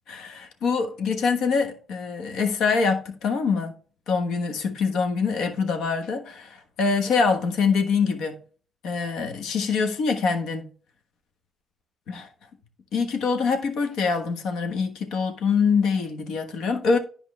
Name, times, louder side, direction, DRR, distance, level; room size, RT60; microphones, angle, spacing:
voice 1, 0.1-3.7 4.1-8.4 8.8-10.7 12.1-12.3 12.9-17.0, left 5 dB, 85° left, 1.3 m, -24 dB
10.5 x 4.9 x 3.3 m
cardioid pair, 90°, 0 cm